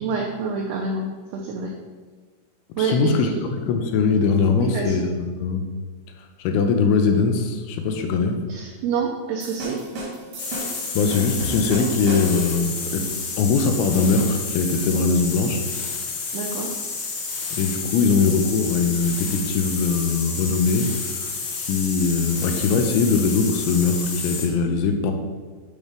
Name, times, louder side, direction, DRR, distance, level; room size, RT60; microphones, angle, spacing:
voice 1, 0.0-1.7 2.8-3.4 4.5-5.1 8.5-9.8 16.3-16.7, right 5 dB, 85° right, 0 dB, 2.3 m, -27 dB
voice 2, 2.8-5.6 6.2-8.4 10.5-10.7 10.9-13.1 13.4-15.6 17.5-21.3 21.6-25.1, left 4 dB, 85° left, 5 dB, 3.0 m, -21 dB
sound 1, 9.4-12.6, right 1 dB, 65° right, 1.9 m, -33 dB
sound 2, 10.4-24.5, left 4 dB, 70° left, 2.4 m, -30 dB
8.2 x 3.1 x 5.1 m, 1.4 s
omnidirectional pair, 5.3 m